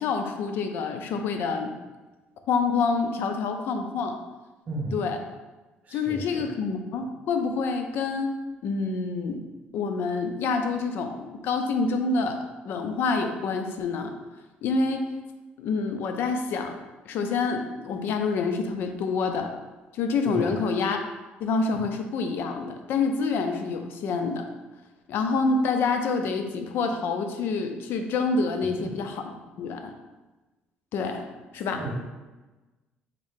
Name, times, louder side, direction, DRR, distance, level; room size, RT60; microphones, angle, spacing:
voice 1, 0.0-1.8 2.5-4.2 4.9-5.2 5.9-8.4 8.6-9.5 9.7-14.1 14.6-15.1 15.6-16.8 17.1-19.5 19.9-21.0 21.4-24.5 25.1-29.1 29.6-29.9 30.9-31.3 31.5-31.8, left 4 dB, 65° left, 6 dB, 0.4 m, -27 dB
voice 2, 5.8-6.5 20.3-20.6 28.8-28.9 31.1-31.2 31.7-31.9, right 2 dB, 40° right, -3 dB, 0.8 m, -34 dB
3.7 x 2.7 x 3.6 m, 1.2 s
cardioid pair, 125°, 4 cm